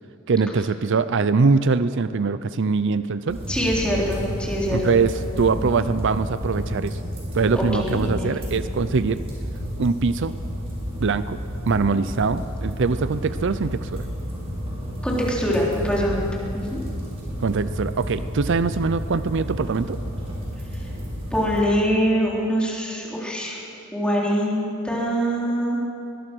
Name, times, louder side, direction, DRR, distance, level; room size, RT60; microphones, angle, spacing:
voice 1, 0.3-3.4 4.7-7.0 7.3-9.2 9.8-10.3 11.0-11.4 11.7-14.0 17.4-20.0, right 4 dB, 55° right, 13 dB, 0.5 m, -22 dB
sound 1, 3.3-21.6, equal, 25° right, 5.8 m, -31 dB
voice 2, 3.5-5.0 5.5-5.8 7.6-8.3 15.0-16.3 16.5-16.8 20.7-20.9 21.3-23.6 23.9-25.8, equal, 5° left, -4 dB, 3.8 m, -24 dB
22.0 x 21.5 x 6.2 m, 2.6 s
head